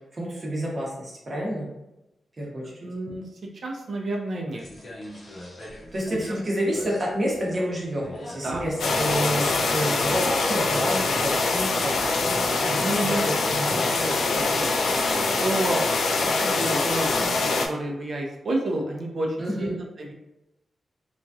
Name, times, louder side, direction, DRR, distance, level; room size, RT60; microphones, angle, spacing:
voice 1, 0.1-1.7 2.4-2.6 5.9-12.0 12.7-13.8 19.4-19.8, equal, 35° right, -3 dB, 0.9 m, -29 dB
voice 2, 2.8-3.2 3.6-4.6 8.4-8.6 12.6-13.2 13.7-15.8 16.2-17.3 17.7-20.1, right 1 dB, 55° right, 0 dB, 0.6 m, -30 dB
sound 1, 4.5-17.6, left 1 dB, 40° left, 0.8 m, -40 dB
sound 2, 8.8-17.7, left 3 dB, 85° left, 0.3 m, -24 dB
2.9 x 2.3 x 2.7 m, 0.92 s
wide cardioid pair, 105°, 0 cm